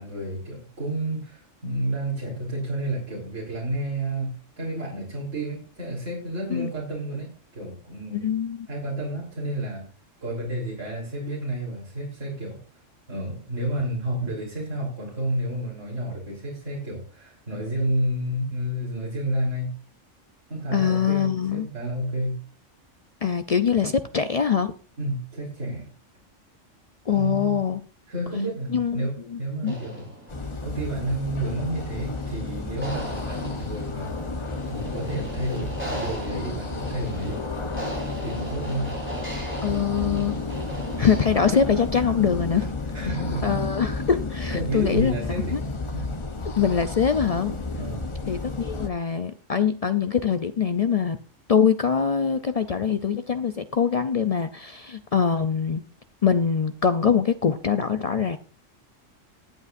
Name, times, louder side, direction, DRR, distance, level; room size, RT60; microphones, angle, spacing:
voice 1, 0.0-8.3 8.7-9.8 10.2-12.6 13.1-19.7 20.5-22.4 25.0-25.9 27.1-27.6 28.1-30.1 30.6-34.1 34.4-37.5 38.2-38.9 42.6-42.7 42.9-43.6 44.5-45.6 45.9-46.1 47.8-48.1, right 1 dB, 75° right, -5 dB, 3.9 m, -30 dB
voice 2, 8.1-8.7 20.7-21.7 23.2-24.7 27.1-27.8 28.7-29.8 39.6-40.3 41.0-42.7 43.4-45.1 45.5-45.6 46.6-47.5 48.3-51.2 51.5-55.8 56.2-58.4, left 7 dB, 75° left, 10 dB, 0.3 m, -23 dB
sound 1, 29.6-42.0, right 1 dB, 10° right, 4.0 m, -38 dB
sound 2, 30.3-48.9, left 3 dB, 25° left, 0.8 m, -32 dB
20.0 x 8.2 x 2.5 m, 0.38 s
omnidirectional pair, 1.3 m